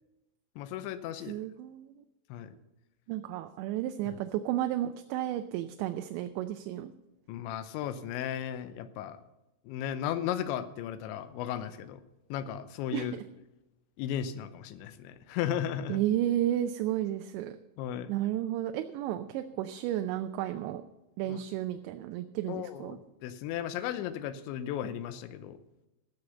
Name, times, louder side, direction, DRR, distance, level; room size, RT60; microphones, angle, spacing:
voice 1, 0.6-1.4 2.3-2.5 4.1-4.2 7.3-9.2 9.7-12.0 12.3-13.1 14.0-16.0 17.8-18.1 21.3-21.4 22.5-25.6, left 10 dB, 90° left, 12 dB, 3.1 m, -35 dB
voice 2, 1.3-2.0 3.1-6.9 12.9-13.1 15.9-17.6 18.1-20.8 21.2-23.0, right 12 dB, 85° right, 8 dB, 2.8 m, -32 dB
15.5 x 6.6 x 6.8 m, 0.96 s
omnidirectional pair, 5.2 m